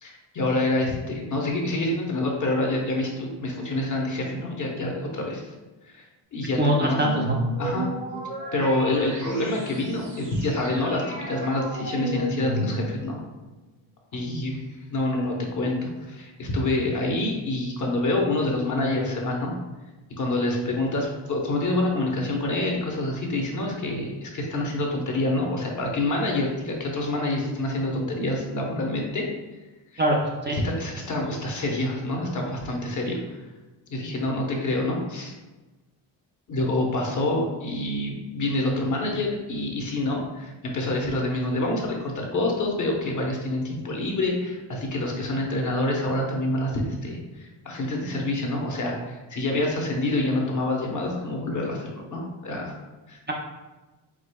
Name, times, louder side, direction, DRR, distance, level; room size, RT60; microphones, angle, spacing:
voice 1, 0.0-5.4 5.9-6.1 6.3-7.0 7.6-7.9 8.5-13.2 14.1-14.6 14.9-19.6 20.2-29.3 30.5-33.4 33.9-35.3 36.5-52.8 53.1-53.3, left 2 dB, 40° left, 0 dB, 0.9 m, -27 dB
voice 2, 6.6-7.4 30.0-30.6 53.3-53.4, right 1 dB, 25° right, -2 dB, 0.5 m, -23 dB
sound 1, 6.9-13.2, right 1 dB, 80° right, 1.5 m, -32 dB
4.9 x 3.9 x 2.2 m, 1.1 s
cardioid pair, 120°, 45 cm